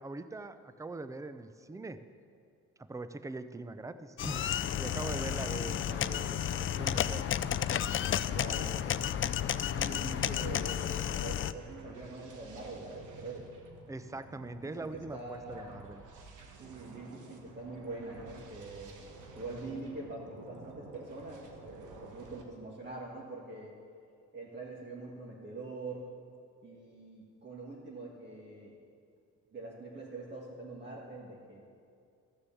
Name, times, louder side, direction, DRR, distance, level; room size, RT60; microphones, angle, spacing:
voice 1, 0.0-2.0 2.8-4.4 4.8-7.4 13.9-16.0, right 2 dB, 10° right, 11 dB, 0.5 m, -42 dB
sound 1, 4.2-11.5, left 10 dB, 45° left, 0.4 m, -32 dB
sound 2, 4.4-22.4, right 3 dB, 80° right, 1.5 m, -51 dB
voice 2, 8.3-8.9 9.7-13.5 14.6-15.8 16.6-19.0 19.3-23.8 24.3-26.1 26.6-28.8 29.5-31.6, right 2 dB, 35° right, -4 dB, 1.8 m, -44 dB
14.5 x 6.6 x 7.1 m, 2.4 s
cardioid pair, 90°, 30 cm